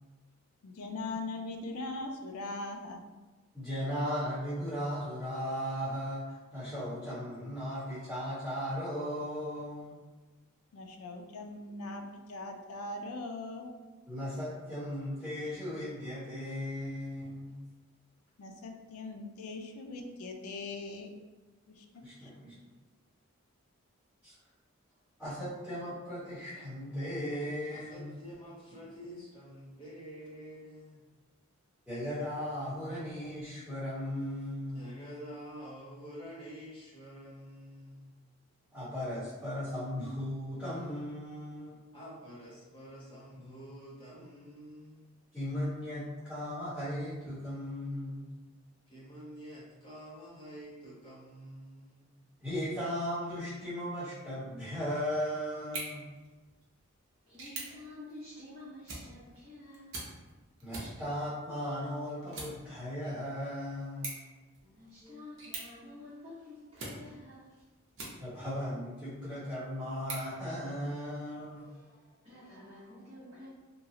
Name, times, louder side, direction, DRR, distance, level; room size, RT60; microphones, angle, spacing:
voice 1, 0.6-3.0 10.7-12.0 12.3-13.7 18.4-21.2, left 2 dB, 85° left, 4 dB, 0.4 m, -40 dB
voice 2, 3.5-10.0 14.1-17.6 22.0-22.5 24.2-24.3 25.2-28.2 31.9-35.0 38.7-41.8 45.3-48.3 52.4-56.1 60.6-64.1 65.0-65.1 68.2-71.7, equal, ahead, -15 dB, 1.1 m, -37 dB
voice 3, 27.7-31.0 34.7-38.2 41.9-45.2 48.9-52.1, equal, 25° left, -8 dB, 0.8 m, -48 dB
sound 1, 55.6-68.6 69.1-71.1, right 2 dB, 55° right, 0.7 m, -47 dB
voice 4, 57.3-60.2 64.6-67.6 69.3-69.5 71.6-73.5, left 1 dB, 30° right, -13 dB, 0.9 m, -50 dB
2.9 x 2.3 x 2.7 m, 1.2 s
head